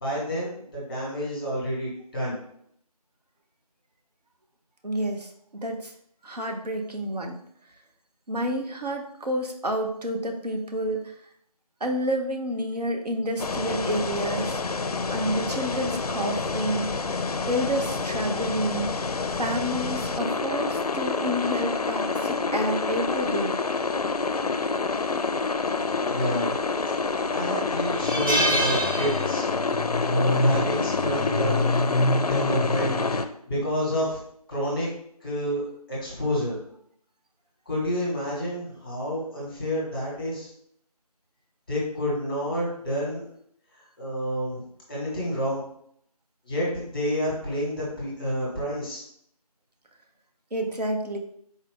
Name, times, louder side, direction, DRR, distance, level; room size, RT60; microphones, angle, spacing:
voice 1, 0.0-2.4 26.1-26.6 27.3-29.5 30.1-31.7 32.2-34.2 34.5-34.9 35.2-35.6 35.9-36.6 37.7-40.5 41.7-43.2 44.0-45.6 46.4-49.0, equal, 10° left, -5 dB, 0.9 m, -29 dB
voice 2, 4.8-5.9 6.2-7.4 8.3-11.2 11.8-14.6 15.1-17.2 17.5-18.9 19.4-23.5 50.5-51.2, equal, 85° right, 4 dB, 0.8 m, -29 dB
sound 1, 13.4-33.3, left 3 dB, 70° left, 0.4 m, -27 dB
sound 2, 26.5-27.0 27.4-27.5 27.9-29.7 30.0-30.2 31.5-31.8, right 1 dB, 30° right, 0.6 m, -27 dB
4.0 x 2.5 x 3.5 m, 0.68 s
figure-of-eight pair, 170°, 20 cm